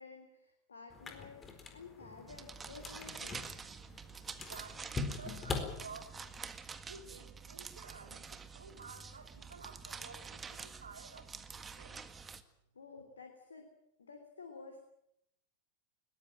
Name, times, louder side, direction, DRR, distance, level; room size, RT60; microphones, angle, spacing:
voice 1, 0.0-3.5 12.7-13.7 14.0-14.8, left 4 dB, 70° left, 5 dB, 3.4 m, -52 dB
sound 1, 0.9-6.4, left 4 dB, 20° left, 4.1 m, -43 dB
sound 2, 2.3-12.4, right 5 dB, 15° right, 1.7 m, -48 dB
voice 2, 4.2-6.1 6.8-12.0, right 4 dB, 70° right, 6 dB, 3.4 m, -53 dB
21.5 x 20.5 x 9.0 m, 0.78 s
figure-of-eight pair, 90°, 0 cm